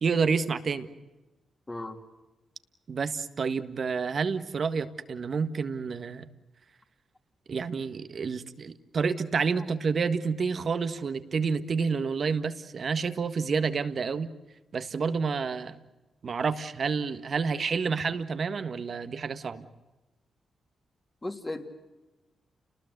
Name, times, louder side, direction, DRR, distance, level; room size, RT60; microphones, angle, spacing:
voice 1, 0.0-0.9 2.9-6.3 7.5-14.3 14.7-15.8 16.2-19.7, right 5 dB, 60° right, 10 dB, 1.6 m, -29 dB
voice 2, 1.7-2.0 21.2-21.6, left 2 dB, 25° left, 6 dB, 3.2 m, -35 dB
29.5 x 20.0 x 8.0 m, 1.1 s
supercardioid pair, 50°, 0 cm